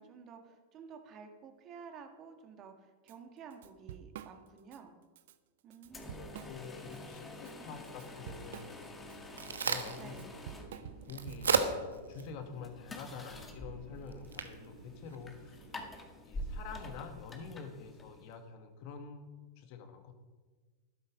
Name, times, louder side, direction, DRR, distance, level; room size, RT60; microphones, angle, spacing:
voice 1, 0.0-4.9 5.6-6.4 7.4-7.9 10.0-10.4, right 6 dB, 35° right, 6 dB, 1.9 m, -52 dB
Drum kit / Drum, 3.1-3.2 3.5-4.8 5.2-5.3 5.7-7.0 7.3-11.7, right 10 dB, 60° right, 0.7 m, -49 dB
sound 1, 5.9-18.4, left 1 dB, 15° left, 1.9 m, -48 dB
voice 2, 6.0-11.6 12.1-15.7 16.2-20.1, left 5 dB, 50° left, 7 dB, 1.6 m, -47 dB
Crack, 9.0-15.9, right 5 dB, 80° right, 1.1 m, -38 dB
12.5 x 11.5 x 5.1 m, 1.3 s
figure-of-eight pair, 95°, 0 cm